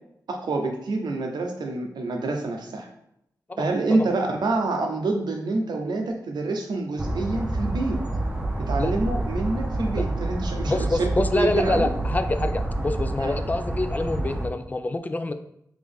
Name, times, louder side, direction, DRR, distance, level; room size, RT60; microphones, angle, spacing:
voice 1, 0.3-2.9 3.6-8.0 8.6-10.9 11.3-11.9 13.2-13.4, right 3 dB, 90° right, 3 dB, 0.7 m, -27 dB
voice 2, 3.5-4.1 8.8-8.9 9.9-10.1 10.7-15.3, left 2 dB, 25° left, 9 dB, 0.3 m, -27 dB
sound 1, 7.0-14.5, right 1 dB, 15° right, 0.8 m, -28 dB
3.9 x 3.0 x 3.5 m, 0.79 s
wide cardioid pair, 75°, 7 cm